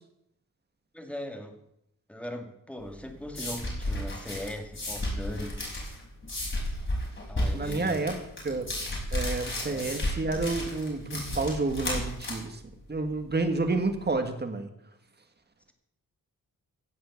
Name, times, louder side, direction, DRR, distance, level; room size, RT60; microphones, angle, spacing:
voice 1, 0.9-1.6 2.1-5.6 7.3-8.1 9.7-9.9, left 1 dB, 5° left, 4 dB, 2.1 m, -39 dB
sound 1, 2.8-14.2, left 1 dB, 35° left, 5.9 m, -33 dB
voice 2, 7.5-8.1 8.4-8.7 9.1-12.6 12.9-14.7, right 3 dB, 30° right, 6 dB, 1.8 m, -29 dB
16.0 x 7.7 x 7.2 m, 0.74 s
wide cardioid pair, 125°, 35 cm